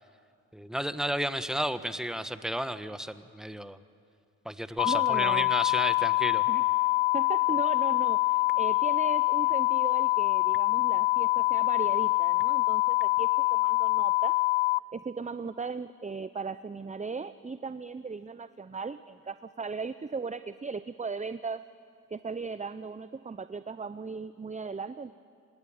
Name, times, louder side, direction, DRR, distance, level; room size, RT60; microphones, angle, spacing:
voice 1, 0.5-3.8 4.4-6.4, equal, ahead, 11 dB, 1.4 m, -32 dB
sound 1, 4.8-14.8, left 20 dB, 75° left, 0.6 m, -25 dB
voice 2, 4.8-5.5 6.5-6.6 7.1-14.4 14.9-21.6 22.1-25.1, right 4 dB, 15° right, 13 dB, 0.7 m, -37 dB
27.0 x 19.5 x 8.8 m, 2.4 s
hypercardioid pair, 40°, 42 cm